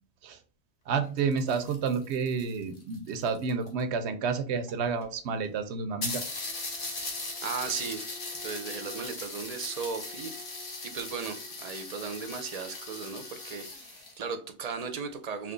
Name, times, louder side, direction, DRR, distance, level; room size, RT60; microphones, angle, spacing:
voice 1, 0.9-6.2, right 5 dB, 90° right, 0.9 m, -30 dB
sound 1, 1.0-3.8 4.7-4.8 5.0-5.1 5.4-5.5 6.0-14.2, left 2 dB, 55° left, 1.2 m, -39 dB
voice 2, 6.9-10.6 10.8-15.5, right 5 dB, 50° right, 0.5 m, -37 dB
3.5 x 2.9 x 3.8 m
omnidirectional pair, 1.1 m